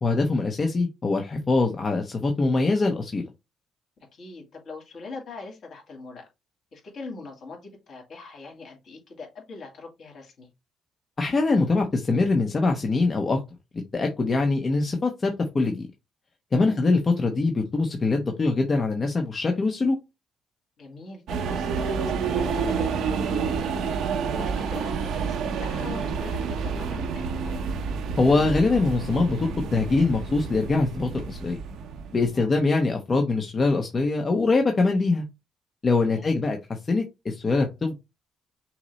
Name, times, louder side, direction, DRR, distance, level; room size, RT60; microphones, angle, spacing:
voice 1, 0.0-3.2 11.2-13.4 13.9-15.9 16.5-20.0 28.2-31.6 32.1-35.3 35.8-37.9, left 3 dB, 35° left, 3 dB, 0.8 m, -23 dB
voice 2, 4.1-6.3 6.7-10.5 16.6-16.8 20.8-23.7 24.3-27.6 32.3-32.7 36.0-36.4, left 3 dB, 60° left, 1 dB, 2.2 m, -42 dB
sound 1, 21.3-32.4, right 5 dB, 80° right, 0.7 m, -29 dB
5.8 x 2.0 x 4.0 m, 0.23 s
cardioid pair, 90°, 0 cm